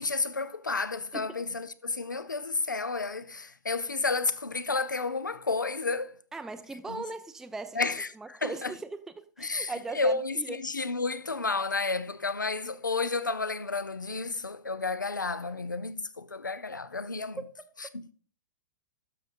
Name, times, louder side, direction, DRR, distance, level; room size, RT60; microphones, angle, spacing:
voice 1, 0.0-6.1 6.9-7.0 7.7-8.7 9.4-17.4 17.8-18.1, left 3 dB, 80° left, 0.6 m, -31 dB
voice 2, 6.3-7.8 8.2-10.6 17.4-17.5, right 3 dB, 5° right, 0.4 m, -39 dB
12.5 x 6.7 x 2.5 m
figure-of-eight pair, 105°, 10 cm